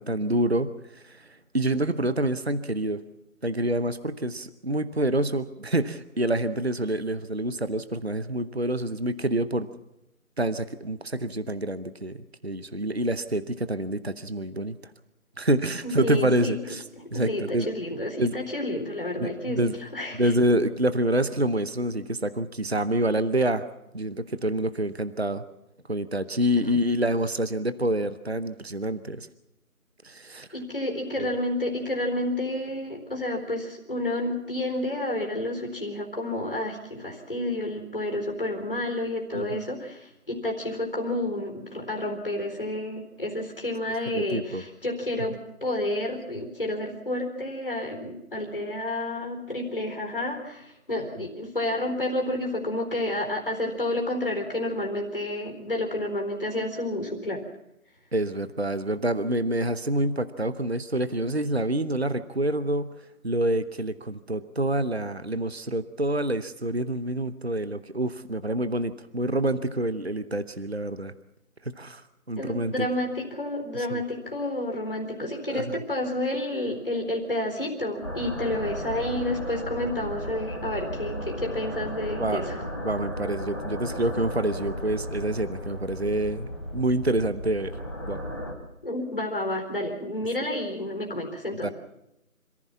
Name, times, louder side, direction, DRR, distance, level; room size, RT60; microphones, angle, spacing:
voice 1, 0.0-3.0 3.4-9.7 10.4-14.8 15.4-16.8 17.1-17.7 18.2-18.4 19.2-19.8 20.1-23.6 23.9-25.4 25.9-29.3 30.0-30.5 31.2-31.3 39.3-39.6 44.1-44.6 58.1-62.9 63.2-71.1 71.6-72.0 72.3-72.9 73.7-74.0 75.5-75.8 82.2-82.4 82.8-87.8 88.1-88.2 91.6-91.7, right 1 dB, 45° right, 13 dB, 0.9 m, -27 dB
voice 2, 15.8-16.5 17.0-20.3 30.5-57.4 72.4-82.6 88.8-91.7, left 1 dB, 35° left, 2 dB, 4.1 m, -30 dB
sound 1, 78.0-88.5, equal, 20° left, 2.4 m, -35 dB
27.0 x 15.0 x 7.2 m, 0.86 s
figure-of-eight pair, 175°, 44 cm